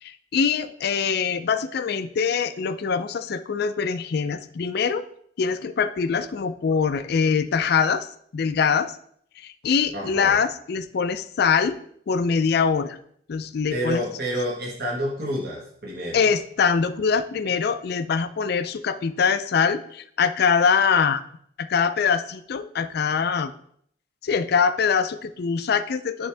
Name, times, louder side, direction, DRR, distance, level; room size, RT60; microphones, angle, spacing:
voice 1, 0.0-5.1 5.4-8.1 8.3-8.9 9.4-11.8 12.1-13.0 13.3-14.0 16.1-21.2 21.6-23.5 24.2-26.3, left 6 dB, 60° left, 11 dB, 0.4 m, -23 dB
voice 2, 9.9-10.4 13.7-16.3, equal, 60° right, -3 dB, 1.4 m, -29 dB
10.5 x 3.7 x 3.3 m, 0.66 s
head